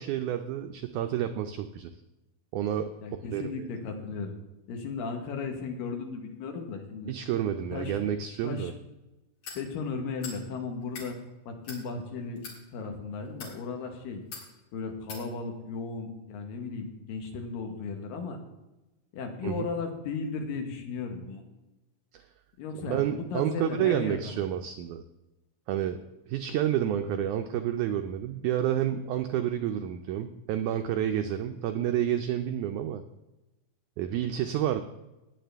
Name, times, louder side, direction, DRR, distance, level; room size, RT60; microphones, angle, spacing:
voice 1, 0.0-1.9 2.5-2.9 3.3-3.7 7.1-8.7 19.4-19.7 22.9-25.0 25.7-26.0 26.3-33.0 34.0-34.8, right 10 dB, 85° right, 7 dB, 1.7 m, -29 dB
voice 2, 3.0-4.3 4.7-7.1 7.7-8.0 8.4-8.7 9.5-11.2 11.5-12.4 12.7-14.2 14.7-18.4 19.1-21.4 22.6-24.4 27.0-27.3, left 4 dB, 75° left, 4 dB, 3.1 m, -35 dB
sound 1, 9.4-9.6 10.2-10.4 10.8-11.1 11.6-11.8 12.4-12.6 13.3-13.6 14.3-14.5 15.1-15.2, left 5 dB, 60° left, 3.6 m, -41 dB
18.0 x 8.2 x 3.4 m, 1.0 s
omnidirectional pair, 4.1 m